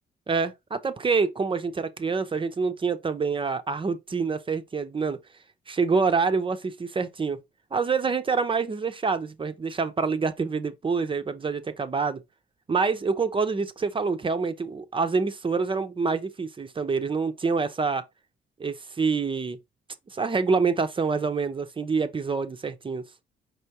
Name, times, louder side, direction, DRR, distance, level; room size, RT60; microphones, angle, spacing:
voice 1, 0.3-5.2 5.7-7.4 7.7-12.2 12.7-18.0 18.6-19.6 20.1-23.0, right 4 dB, 25° right, 0.6 m, -26 dB
5.4 x 3.4 x 2.8 m
cardioid pair, 90°, 20 cm